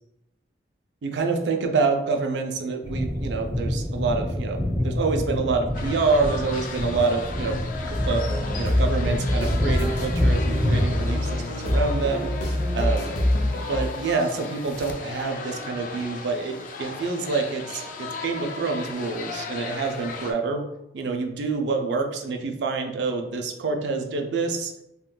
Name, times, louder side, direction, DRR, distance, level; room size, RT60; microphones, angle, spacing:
voice 1, 1.0-4.6 4.8-7.6 7.9-8.3 8.6-12.3 12.7-13.2 13.7-20.7 20.9-24.7, right 4 dB, 75° right, 4 dB, 0.4 m, -27 dB
sound 1, 2.8-11.1, left 1 dB, 15° right, 0.8 m, -28 dB
sound 2, 5.7-20.3, left 4 dB, 45° left, 0.3 m, -37 dB
sound 3, 7.9-13.9, left 1 dB, 90° left, 0.8 m, -25 dB
3.6 x 2.3 x 2.2 m, 0.86 s
head